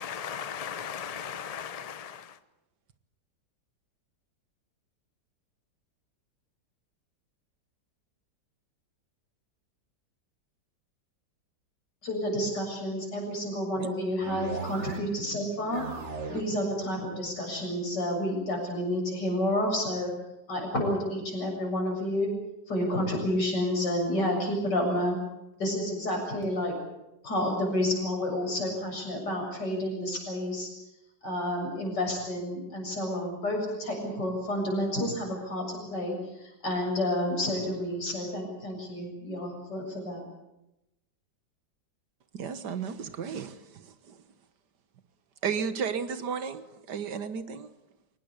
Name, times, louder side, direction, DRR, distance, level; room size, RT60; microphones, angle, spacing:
voice 1, 0.0-2.2, left 7 dB, 30° left, 0.7 m, -37 dB
voice 2, 12.0-15.8 16.3-20.1 20.5-22.3 22.7-25.2 25.6-26.8 27.2-30.7 31.2-35.6 35.9-36.2 36.6-40.2, left 1 dB, 75° left, 7.8 m, -30 dB
sound 1, 14.2-15.2 15.5-16.6, right 4 dB, 40° right, 2.0 m, -38 dB
voice 3, 42.3-43.6 43.9-44.2 45.4-46.6 46.9-47.7, right 6 dB, 70° right, 1.9 m, -33 dB
23.5 x 19.0 x 8.3 m
omnidirectional pair, 1.9 m